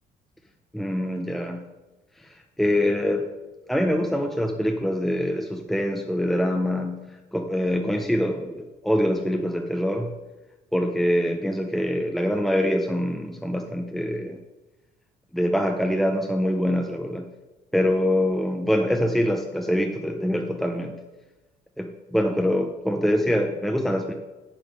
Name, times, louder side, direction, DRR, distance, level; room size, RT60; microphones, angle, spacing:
voice 1, 0.7-1.6 2.2-3.3 3.7-7.0 7.3-10.1 10.7-14.4 15.3-17.3 17.7-21.0 21.8-24.1, equal, ahead, 4 dB, 0.6 m, -24 dB
7.4 x 7.3 x 5.3 m, 1.1 s
cardioid pair, 110°, 17 cm